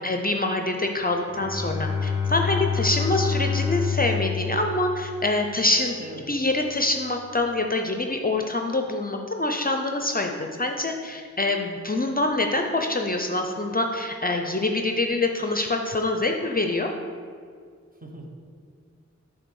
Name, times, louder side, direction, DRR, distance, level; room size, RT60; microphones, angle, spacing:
voice 1, 0.0-6.0 6.3-10.3 10.6-16.9, left 2 dB, 30° left, 4 dB, 0.6 m, -25 dB
Bowed string instrument, 1.2-5.8, left 6 dB, 5° right, 2.0 m, -28 dB
voice 2, 17.9-18.3, right 1 dB, 30° right, 0 dB, 1.3 m, -40 dB
6.5 x 3.8 x 6.3 m, 2.1 s
cardioid pair, 45°, 29 cm